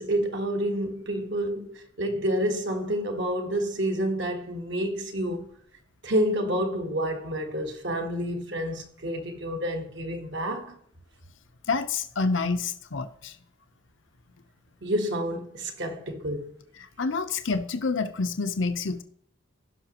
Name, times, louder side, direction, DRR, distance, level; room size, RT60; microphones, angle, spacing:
voice 1, 0.0-5.5 6.0-10.8 14.8-16.6, equal, 60° right, 1.5 m, -29 dB
voice 2, 11.7-13.3 17.0-19.0, left 4 dB, 75° left, 0.8 m, -28 dB
17.0 x 5.9 x 3.0 m
head